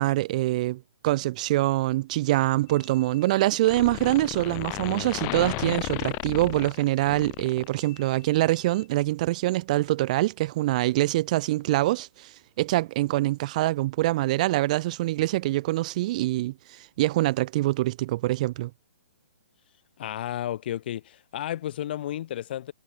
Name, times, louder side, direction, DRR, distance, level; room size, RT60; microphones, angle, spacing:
voice 1, 0.0-18.7, right 17 dB, 35° right, 0.4 m, -25 dB
sound 1, 2.7-3.4 3.6-8.1, left 33 dB, 25° left, 0.9 m, -34 dB
voice 2, 20.0-22.7, left 12 dB, 50° left, 1.4 m, -32 dB
hypercardioid pair, 150°, 7 cm